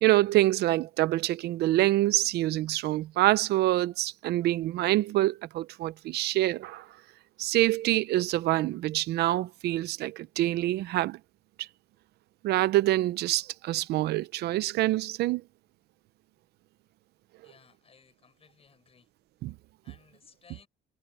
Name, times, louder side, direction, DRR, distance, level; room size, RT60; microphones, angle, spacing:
voice 1, 0.0-6.8 7.4-11.2 12.4-15.4 19.4-19.5, right 16 dB, 75° right, 0.7 m, -26 dB
voice 2, 17.4-19.1 19.8-20.7, left 6 dB, 35° left, 7.9 m, -59 dB
cardioid pair, 110°, 17 cm